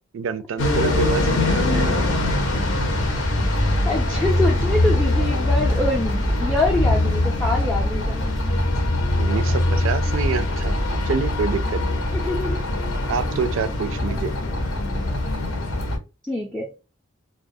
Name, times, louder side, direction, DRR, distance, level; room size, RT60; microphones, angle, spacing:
voice 1, 0.1-2.1 9.2-10.8 11.1-12.0 13.1-14.3, right 5 dB, 75° right, 0.3 m, -27 dB
sound 1, 0.6-16.0, left 1 dB, 80° left, 0.7 m, -22 dB
voice 2, 3.9-8.2 12.1-12.6 16.2-16.7, left 2 dB, 5° left, 0.4 m, -25 dB
2.2 x 2.2 x 2.6 m
head